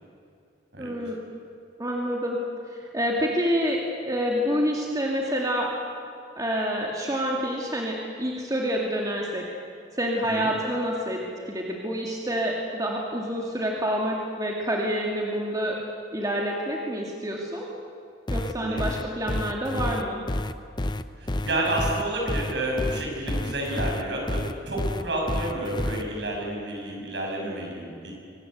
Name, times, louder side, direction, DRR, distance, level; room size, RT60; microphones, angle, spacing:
voice 1, 0.8-1.2 1.8-2.4 2.7-5.7 6.4-9.4 9.9-15.8 16.1-17.7 18.3-20.2, equal, 20° right, -1 dB, 2.5 m, -28 dB
sound 1, 18.3-26.0, left 1 dB, 25° left, 0.7 m, -29 dB
voice 2, 18.6-18.9 21.2-28.1, right 1 dB, 65° right, -1 dB, 7.5 m, -30 dB
24.5 x 20.0 x 8.1 m, 2.4 s
head